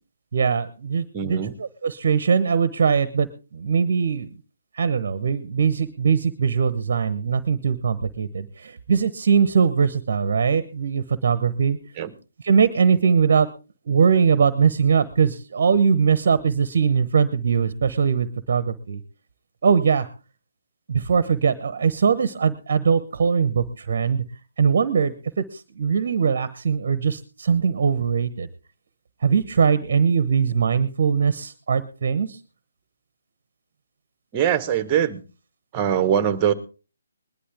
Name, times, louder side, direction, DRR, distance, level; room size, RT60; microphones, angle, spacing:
voice 1, 0.3-3.3 3.5-4.3 4.7-11.8 12.4-13.5 13.9-19.0 19.6-20.1 20.9-24.2 24.6-28.5 29.2-32.4, right 6 dB, 50° right, 15 dB, 1.0 m, -21 dB
voice 2, 1.1-1.5 12.0-12.1 34.3-35.2 35.7-36.5, right 9 dB, 20° right, 13 dB, 1.2 m, -22 dB
20.5 x 11.5 x 3.5 m, 0.34 s
figure-of-eight pair, 145°, 0 cm